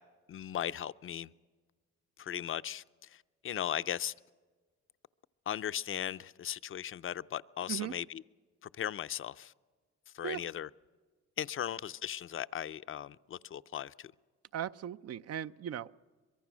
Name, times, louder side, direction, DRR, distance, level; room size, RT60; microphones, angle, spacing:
voice 1, 0.3-1.3 2.2-2.8 3.1-4.1 5.5-8.2 8.8-9.5 10.1-10.7 11.4-14.1, left 10 dB, 45° left, 0.6 m, -37 dB
voice 2, 14.5-15.9, right 10 dB, 55° right, 0.6 m, -38 dB
24.0 x 22.5 x 6.2 m
cardioid pair, 90°, 30 cm